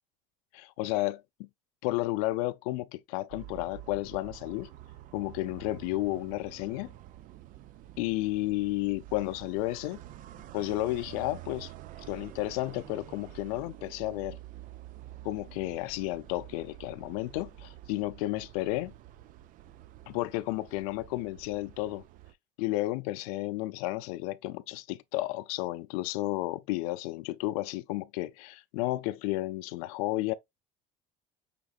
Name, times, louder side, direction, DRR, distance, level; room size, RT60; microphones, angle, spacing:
voice 1, 0.5-1.5 1.8-4.7 5.1-6.9 8.0-10.0 10.5-11.7 12.1-14.4 15.2-18.9 20.1-22.0 22.6-30.3, left 18 dB, 85° left, 0.5 m, -32 dB
sound 1, 3.3-22.3, right 14 dB, 50° right, 0.5 m, -48 dB
5.8 x 3.6 x 2.3 m
cardioid pair, 130°, 18 cm